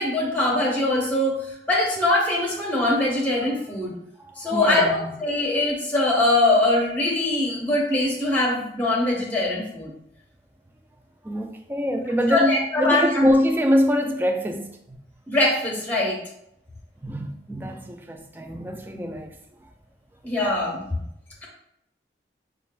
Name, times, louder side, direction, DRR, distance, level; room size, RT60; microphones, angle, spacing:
voice 1, 0.0-1.4 1.7-3.9 4.4-9.9 12.3-13.2 15.3-16.2 20.2-21.0, left 2 dB, 10° left, 1.0 m, -22 dB
voice 2, 4.2-5.1 11.2-15.0 17.0-19.4 20.4-20.5, equal, 10° right, 0.3 m, -24 dB
6.8 x 2.4 x 2.2 m
head